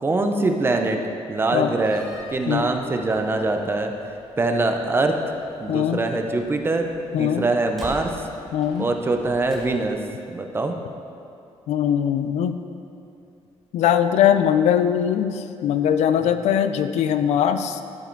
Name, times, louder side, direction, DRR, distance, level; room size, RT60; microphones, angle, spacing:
voice 1, 0.0-1.0 1.3-3.9 4.4-5.1 5.6-6.9 7.2-8.1 8.8-10.0 10.3-10.8, right 2 dB, 20° right, 4 dB, 0.6 m, -23 dB
Slam, 1.6-10.1, equal, ahead, 2.2 m, -46 dB
voice 2, 5.7-6.0 7.1-7.5 8.5-8.9 11.7-12.6 13.7-17.8, left 9 dB, 90° left, 10 dB, 0.4 m, -21 dB
12.0 x 4.8 x 4.6 m, 2.6 s
cardioid pair, 150°, 11 cm